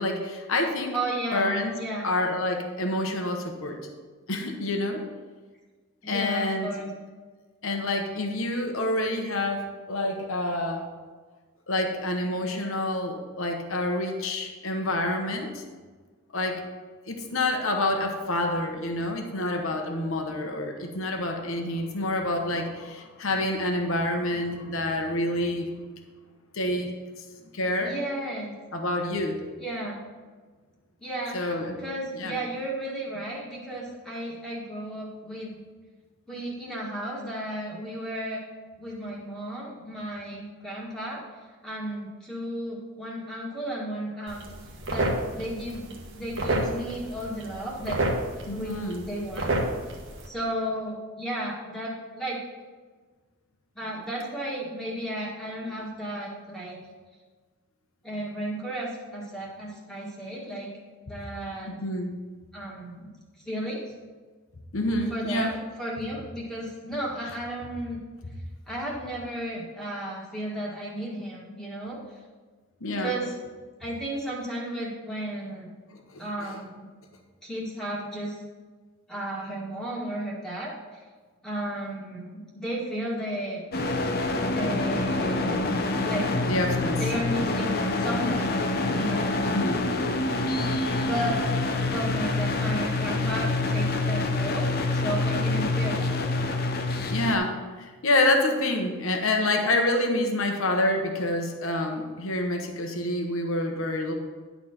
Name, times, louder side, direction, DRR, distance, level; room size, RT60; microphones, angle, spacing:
voice 1, 0.0-1.0 1.3-1.7 2.0-3.8 4.3-5.0 6.1-6.7 7.6-10.9 11.7-15.6 16.3-16.6 17.1-25.7 26.5-26.9 27.2-27.3 27.5-27.9 28.7-29.4 31.3-31.8 32.1-32.4 48.5-49.1 61.7-62.1 64.7-65.5 72.8-73.2 76.1-76.2 86.5-87.0 89.4-89.8 97.1-104.1, left 1 dB, 65° left, 3 dB, 1.0 m, -27 dB
voice 2, 0.9-1.5 1.8-2.1 6.0-6.9 27.8-28.5 29.6-30.0 31.0-31.4 31.8-35.6 36.3-38.4 38.8-41.2 41.6-44.5 44.9-48.0 48.5-49.5 50.2-52.4 53.8-56.8 58.0-60.7 61.0-61.7 62.5-63.1 63.4-63.8 65.1-65.5 65.8-68.0 68.7-72.0 73.0-73.3 73.8-75.7 76.2-76.9 77.4-78.4 79.1-81.0 81.4-83.6 84.4-85.6 86.0-86.3 87.0-88.5 88.9-89.3 91.0-91.4 91.9-94.7 94.9-96.2, right 1 dB, ahead, -5 dB, 1.7 m, -33 dB
sound 1, 44.3-50.3, right 2 dB, 55° right, 1.3 m, -31 dB
sound 2, 83.7-97.4, left 2 dB, 45° left, 0.7 m, -26 dB
11.0 x 4.1 x 5.8 m, 1.4 s
head